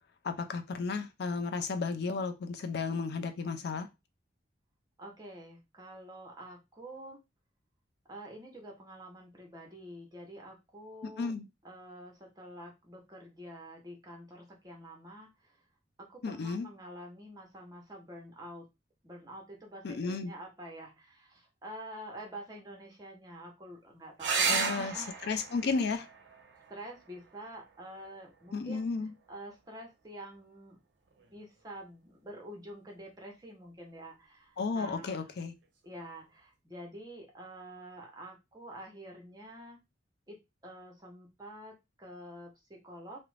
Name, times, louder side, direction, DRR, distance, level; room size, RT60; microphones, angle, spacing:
voice 1, 0.2-3.9 11.0-11.5 16.2-16.7 19.8-20.3 24.5-24.9 25.3-26.1 28.5-29.1 34.6-35.5, left 4 dB, 60° left, 0.4 m, -33 dB
voice 2, 5.0-7.2 8.1-11.3 11.6-15.7 16.0-18.7 19.0-25.4 26.7-28.9 29.3-30.8 31.3-35.3 35.8-39.8 40.3-40.4 40.6-43.2, right 1 dB, 20° right, 0.7 m, -47 dB
sound 1, 24.2-29.2 31.1-31.7 35.2-35.3 35.6-35.7, right 5 dB, 70° right, 0.5 m, -36 dB
2.4 x 2.0 x 3.1 m
head